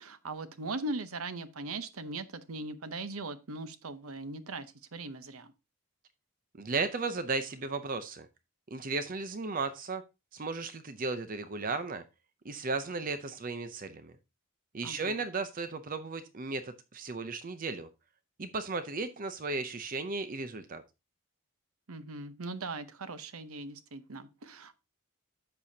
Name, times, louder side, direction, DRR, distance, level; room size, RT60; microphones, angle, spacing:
voice 1, 0.0-4.7 4.9-5.5 14.8-15.2 21.9-24.7, right 2 dB, 80° right, 0.9 m, -39 dB
voice 2, 6.5-8.3 8.7-10.0 10.3-12.0 12.4-14.1 14.7-17.9 18.4-20.8, right 3 dB, 40° right, 0.6 m, -35 dB
10.5 x 6.9 x 2.8 m
head